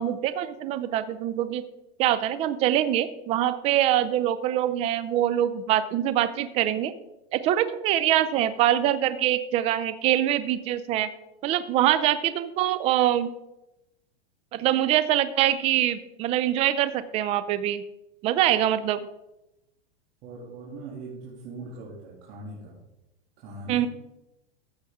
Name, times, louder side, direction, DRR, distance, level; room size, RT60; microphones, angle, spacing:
voice 1, 0.0-1.6 2.0-6.9 7.3-11.1 11.4-13.3 14.5-17.8 18.2-19.0 23.7-23.9, right 12 dB, 20° right, 13 dB, 0.4 m, -24 dB
voice 2, 20.2-22.8 23.4-23.9, right 2 dB, 40° right, -6 dB, 2.7 m, -40 dB
14.0 x 6.6 x 3.6 m, 0.92 s
supercardioid pair, 150°, 32 cm